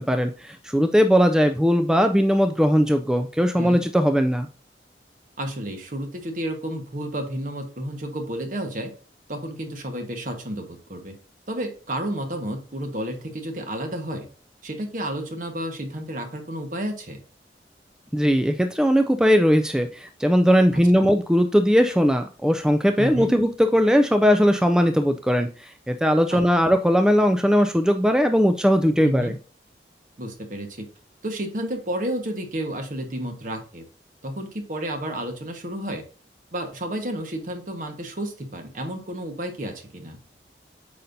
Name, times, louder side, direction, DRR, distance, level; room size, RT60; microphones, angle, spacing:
voice 1, 0.0-4.5 18.1-29.3, equal, 5° right, 7 dB, 0.3 m, -19 dB
voice 2, 5.4-8.9 9.3-11.1 11.5-14.3 14.6-17.2 20.7-21.1 23.0-23.3 26.3-26.4 29.0-29.3 30.2-30.9 31.2-33.8 34.2-36.0 36.5-40.2, right 1 dB, 50° right, 5 dB, 1.3 m, -31 dB
8.4 x 5.4 x 2.6 m, 0.39 s
head